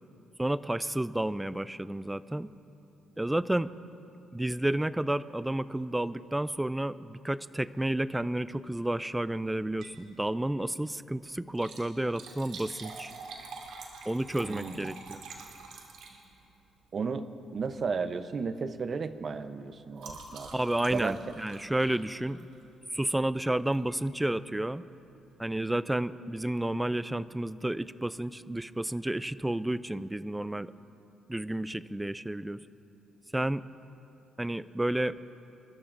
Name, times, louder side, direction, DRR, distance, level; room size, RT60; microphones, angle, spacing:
voice 1, 0.4-2.5 3.2-3.7 4.3-13.1 14.1-15.2 20.5-22.5 22.9-24.8 25.4-30.7 31.3-32.6 33.3-33.6 34.4-35.2, right 1 dB, 10° right, 16 dB, 0.4 m, -31 dB
Liquid, 9.8-10.0 10.4-10.5 11.4-16.5 17.5-17.8 18.1-18.4 18.7-22.8 23.7-24.0 24.5-24.6 24.8-24.9, right 4 dB, 80° right, 2.0 m, -47 dB
voice 2, 14.4-14.9 16.9-17.2 17.5-20.5 20.9-21.2, right 5 dB, 45° right, 11 dB, 0.7 m, -34 dB
30.0 x 13.5 x 2.6 m, 2.9 s
cardioid pair, 90°, 0 cm